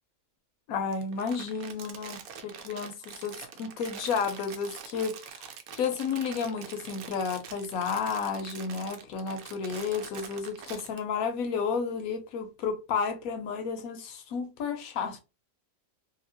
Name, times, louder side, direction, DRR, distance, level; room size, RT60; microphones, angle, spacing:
voice 1, 0.7-5.5 5.7-15.2, left 5 dB, 85° left, 1.1 m, -32 dB
Crumpling crinkling, 0.9-11.0, right 8 dB, 90° right, 1.0 m, -45 dB
2.9 x 2.7 x 2.7 m
omnidirectional pair, 1.5 m